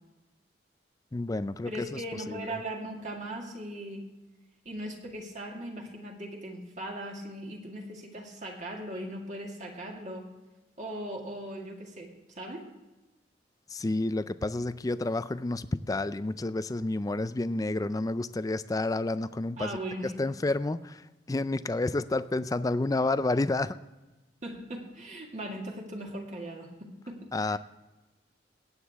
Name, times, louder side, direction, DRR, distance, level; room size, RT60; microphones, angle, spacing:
voice 1, 1.1-2.6 13.7-19.8 20.2-23.8 27.3-27.6, left 2 dB, 20° left, 14 dB, 0.4 m, -30 dB
voice 2, 1.7-4.1 4.7-10.3 10.8-12.1 12.4-12.6 19.6-20.1 24.4-27.3, right 1 dB, 40° right, 0 dB, 2.0 m, -39 dB
18.5 x 8.2 x 3.5 m, 1.1 s
head